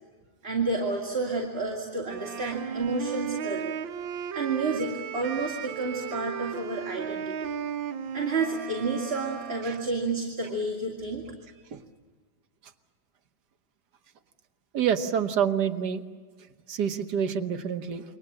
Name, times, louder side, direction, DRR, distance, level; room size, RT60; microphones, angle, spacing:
voice 1, 0.4-3.7 4.3-7.5 8.1-11.2, right 3 dB, 30° right, -1 dB, 2.7 m, -30 dB
Wind instrument woodwind instrument, 2.1-10.0, right 8 dB, 75° right, 1.7 m, -36 dB
voice 2, 14.7-16.0 16.7-18.0, right 8 dB, 60° right, 8 dB, 1.6 m, -27 dB
28.5 x 23.5 x 7.5 m, 1.5 s
omnidirectional pair, 2.1 m